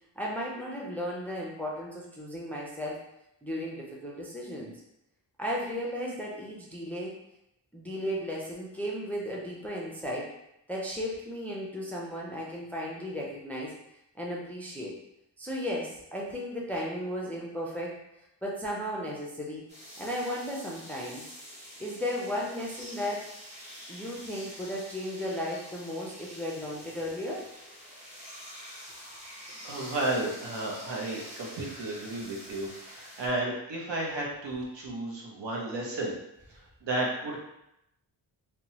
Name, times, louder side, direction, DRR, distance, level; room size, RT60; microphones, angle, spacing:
voice 1, 0.2-3.0 3.4-4.7 5.4-7.2 7.7-10.3 10.7-13.7 14.2-14.9 15.4-18.0 18.4-19.7 20.0-21.3 21.8-23.3 23.9-27.5, equal, 5° left, -4 dB, 0.4 m, -35 dB
sound 1, 19.7-33.3, equal, 15° right, 1.0 m, -47 dB
voice 2, 28.6-28.9 29.6-36.2 36.5-37.4, right 2 dB, 80° right, -2 dB, 0.9 m, -33 dB
2.9 x 2.2 x 2.8 m, 0.83 s
wide cardioid pair, 120°, 44 cm